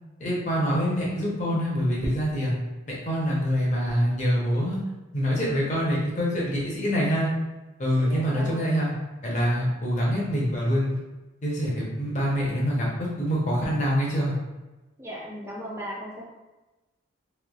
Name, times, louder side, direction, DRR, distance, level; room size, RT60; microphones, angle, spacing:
voice 1, 0.2-2.5 2.9-4.8 5.1-7.3 7.8-8.9 9.2-11.0 11.4-14.3, equal, 35° left, -4 dB, 0.7 m, -25 dB
voice 2, 8.0-8.6 15.0-16.3, equal, 15° right, -3 dB, 0.4 m, -37 dB
3.1 x 2.2 x 2.3 m, 1.1 s
head